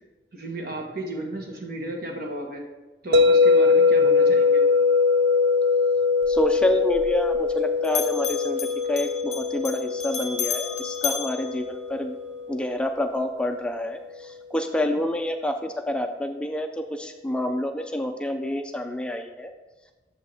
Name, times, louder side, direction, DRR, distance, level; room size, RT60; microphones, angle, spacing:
voice 1, 0.3-2.6 3.0-4.6, right 1 dB, 60° right, 1 dB, 1.4 m, -34 dB
sound 1, 3.1-13.2, left 4 dB, 75° right, 0.4 m, -22 dB
Bell, 6.2-7.6 7.8-12.3, left 7 dB, 40° left, 0.8 m, -34 dB
voice 2, 6.3-12.2 12.5-19.5, left 1 dB, 5° left, 5 dB, 0.3 m, -28 dB
8.4 x 7.0 x 3.4 m, 1.2 s
head